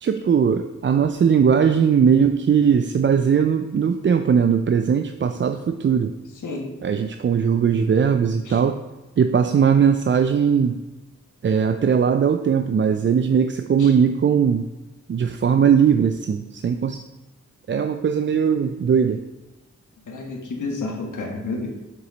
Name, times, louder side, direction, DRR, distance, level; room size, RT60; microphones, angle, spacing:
voice 1, 0.0-6.1 6.8-8.8 9.2-10.8 11.4-14.7 15.1-17.0 17.7-19.2, right 7 dB, 40° right, 8 dB, 0.4 m, -19 dB
voice 2, 20.1-21.7, left 3 dB, 85° left, 1 dB, 1.4 m, -30 dB
6.8 x 4.9 x 4.0 m, 1.1 s
cardioid pair, 55°, 30 cm